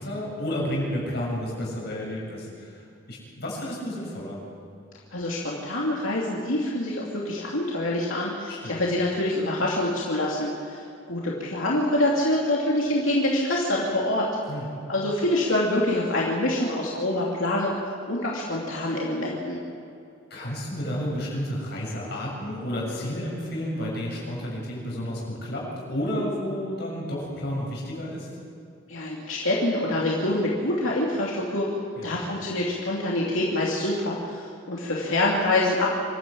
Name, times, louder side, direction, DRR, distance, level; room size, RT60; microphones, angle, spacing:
voice 1, 0.0-2.8 3.1-4.4 8.5-8.8 14.5-14.7 20.3-28.3 32.0-32.2, equal, 55° left, -4 dB, 7.5 m, -31 dB
voice 2, 5.1-14.3 14.9-17.8 18.1-19.6 28.9-31.7 32.0-35.9, left 1 dB, 85° left, -4 dB, 2.8 m, -26 dB
26.0 x 12.5 x 8.6 m, 2.4 s
head